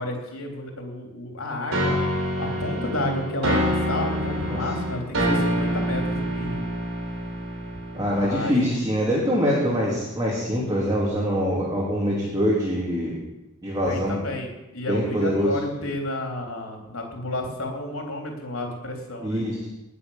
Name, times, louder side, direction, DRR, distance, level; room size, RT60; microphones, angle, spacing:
voice 1, 0.0-2.0 2.4-6.7 8.1-8.9 13.9-19.4, left 1 dB, 85° left, 1 dB, 3.7 m, -31 dB
sound 1, 1.7-8.6, equal, 90° right, 3.9 m, -26 dB
voice 2, 7.9-13.1 13.6-14.2 14.9-15.5 19.2-19.7, equal, 20° right, -6 dB, 3.3 m, -24 dB
19.5 x 7.0 x 7.3 m, 0.98 s
head